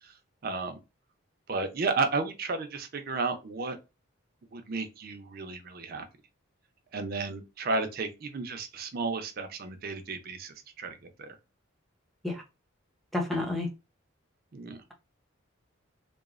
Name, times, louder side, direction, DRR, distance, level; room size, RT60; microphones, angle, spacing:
voice 1, 0.4-0.8 1.5-3.8 4.5-6.1 6.9-11.3 14.5-14.8, right 3 dB, 45° right, 0.5 m, -33 dB
voice 2, 13.1-13.7, left 2 dB, ahead, 0.6 m, -30 dB
3.0 x 2.0 x 2.4 m
head